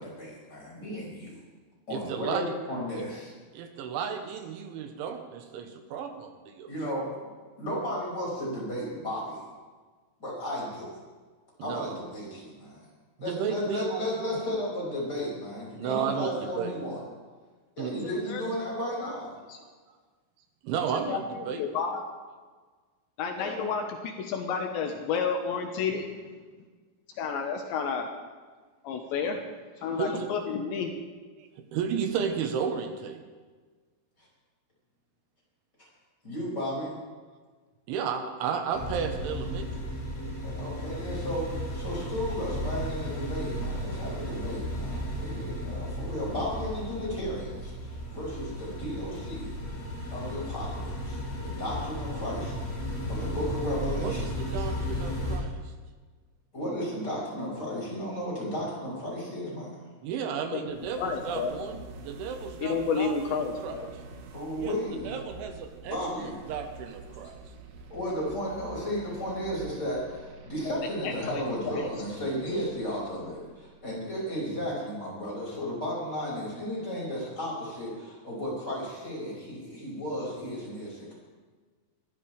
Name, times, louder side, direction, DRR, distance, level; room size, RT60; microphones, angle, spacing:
voice 1, 0.0-1.3 1.9-3.3 6.7-7.1 7.6-9.4 10.2-11.0 11.6-12.9 13.2-17.0 17.8-19.4 23.4-23.7 36.2-37.0 40.4-49.5 50.1-52.5 53.1-54.3 56.5-59.7 64.3-65.1 65.8-66.3 67.9-81.1, equal, 20° left, -5 dB, 6.1 m, -34 dB
voice 2, 1.9-2.5 3.5-6.7 11.6-12.0 13.2-14.3 15.8-16.8 17.8-18.1 19.6-19.7 20.6-21.6 30.0-30.3 31.4-33.2 37.3-37.4 37.9-39.9 54.0-55.6 60.0-63.8 64.5-64.8 65.0-67.3, right 7 dB, 80° right, 5 dB, 3.5 m, -33 dB
voice 3, 21.1-22.0 23.2-26.1 27.2-28.1 28.8-29.4 29.8-30.9 60.5-60.6 61.0-61.6 62.6-63.9 70.6-70.7 71.0-71.8, left 6 dB, 75° left, 3 dB, 3.2 m, -31 dB
sound 1, 38.7-55.4, equal, 40° left, 5.8 m, -34 dB
sound 2, 60.7-74.6, right 3 dB, 65° right, 2.4 m, -47 dB
22.0 x 14.5 x 3.4 m, 1.4 s
omnidirectional pair, 5.6 m